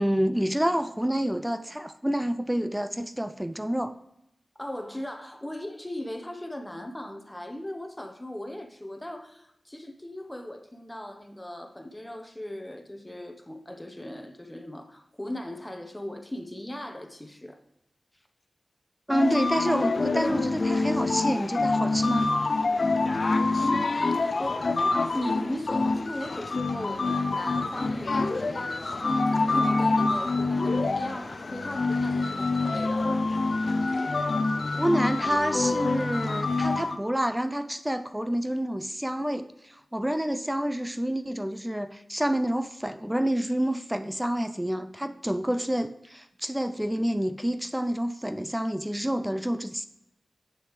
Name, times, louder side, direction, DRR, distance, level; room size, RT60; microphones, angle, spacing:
voice 1, 0.0-3.9 19.1-22.3 34.8-49.9, equal, 10° right, 10 dB, 0.4 m, -28 dB
voice 2, 4.6-17.6 23.5-33.2, left 1 dB, 15° left, 5 dB, 0.9 m, -38 dB
sound 1, 19.1-37.0, left 3 dB, 60° left, 0.4 m, -26 dB
8.3 x 6.4 x 3.2 m, 0.84 s
cardioid pair, 50°, 0 cm